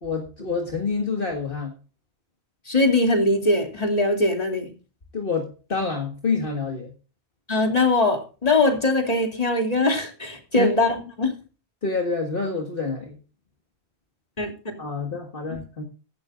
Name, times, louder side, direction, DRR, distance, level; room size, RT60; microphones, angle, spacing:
voice 1, 0.0-1.7 5.1-6.9 10.6-10.7 11.8-13.2 14.8-15.8, left 4 dB, 55° left, 2 dB, 1.9 m, -27 dB
voice 2, 2.7-4.7 7.5-11.3 14.4-14.8, left 2 dB, 35° left, 3 dB, 2.9 m, -21 dB
15.0 x 11.5 x 2.5 m, 0.34 s
omnidirectional pair, 1.1 m